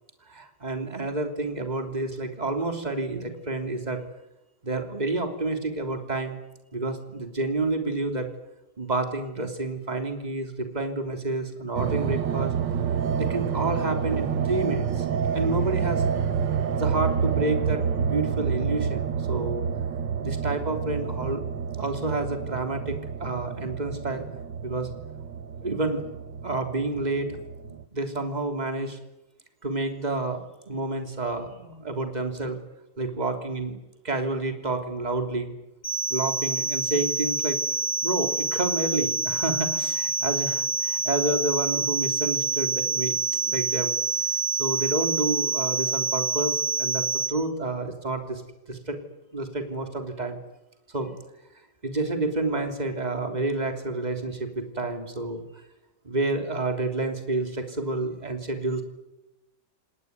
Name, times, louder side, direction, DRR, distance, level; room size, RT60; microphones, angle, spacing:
voice 1, 0.3-4.0 4.6-6.4 6.7-8.3 8.8-12.5 13.2-15.0 15.3-16.2 16.8-19.6 20.2-21.4 21.8-24.3 24.6-24.9 25.6-26.0 26.4-27.4 27.7-29.0 29.6-32.6 33.0-33.8 34.0-35.5 36.1-37.6 38.0-44.0 44.3-48.4 48.7-49.0 49.3-50.4 50.9-51.1 51.8-55.4 56.0-58.8, right 2 dB, 20° right, 6 dB, 3.4 m, -29 dB
sound 1, 11.8-27.8, right 7 dB, 85° right, 1.9 m, -28 dB
sound 2, 35.8-47.3, right 3 dB, 80° left, 7.7 m, -27 dB
29.0 x 19.5 x 9.6 m, 0.94 s
omnidirectional pair, 1.9 m